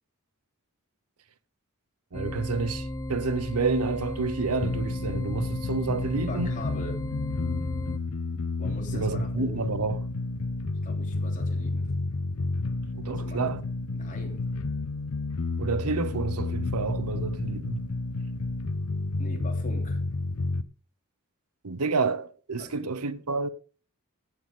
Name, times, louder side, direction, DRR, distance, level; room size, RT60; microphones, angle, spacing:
sound 1, 2.1-8.0, left 1 dB, 15° left, 0.5 m, -34 dB
voice 1, 2.1-6.5 8.9-10.0 12.9-13.6 15.6-17.8 21.6-23.5, right 4 dB, 80° right, 0.9 m, -29 dB
sound 2, 4.6-20.6, left 3 dB, 75° left, 0.8 m, -31 dB
voice 2, 6.1-7.0 8.6-9.7 10.8-11.9 13.0-13.5 13.9-14.5 19.2-20.0 22.6-22.8, left 1 dB, 35° left, 3.3 m, -42 dB
15.0 x 8.1 x 3.8 m
head